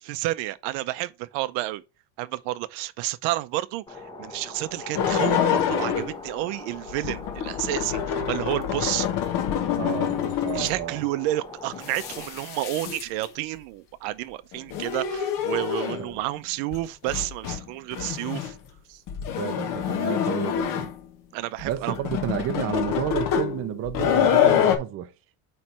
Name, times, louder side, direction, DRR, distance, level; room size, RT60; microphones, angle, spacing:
voice 1, 0.0-1.8 2.2-9.1 10.5-18.6 18.9-19.0 21.3-22.0, right 17 dB, 80° right, 0.7 m, -30 dB
sound 1, 3.9-12.3, left 2 dB, 10° left, 0.9 m, -42 dB
sound 2, 4.9-6.2 6.9-10.9 11.7-13.3 14.5-16.1 16.7-16.8 17.1-17.6 17.9-18.6 19.1-21.1 21.6-24.8, left 9 dB, 50° left, 1.2 m, -26 dB
voice 2, 9.8-11.0 16.0-16.2 19.4-20.9 21.6-25.1, right 11 dB, 35° right, 0.5 m, -31 dB
8.9 x 3.3 x 4.2 m
cardioid pair, 170°, 42 cm